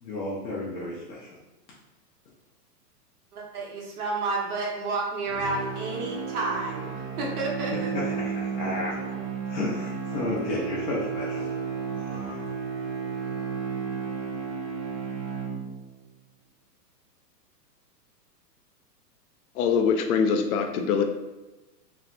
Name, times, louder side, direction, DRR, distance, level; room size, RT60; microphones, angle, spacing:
voice 1, 0.0-1.4 7.9-8.9 9.5-11.5 11.9-12.5, left 2 dB, 85° left, -5 dB, 0.9 m, -33 dB
voice 2, 3.3-7.7 8.0-8.1, right 3 dB, 60° right, -3 dB, 1.1 m, -30 dB
sound 1, 5.3-16.0, right 5 dB, 40° right, 0.6 m, -33 dB
voice 3, 19.6-21.0, left 6 dB, 60° left, 5 dB, 0.5 m, -23 dB
3.2 x 2.0 x 2.6 m, 1.1 s
hypercardioid pair, 140°, 49 cm